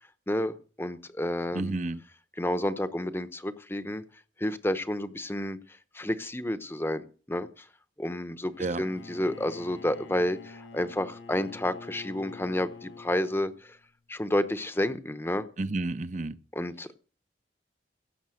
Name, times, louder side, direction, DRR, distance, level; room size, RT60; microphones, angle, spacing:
voice 1, 0.3-1.8 2.4-4.0 4.4-5.6 5.9-7.7 8.0-13.8 14.1-15.5 16.6-16.9, left 1 dB, 15° left, 0.8 m, -30 dB
voice 2, 1.5-2.0 8.6-8.8 15.6-16.4, right 2 dB, 40° right, 0.7 m, -31 dB
Bowed string instrument, 8.5-13.8, left 3 dB, 90° left, 1.0 m, -47 dB
16.5 x 7.4 x 6.4 m
head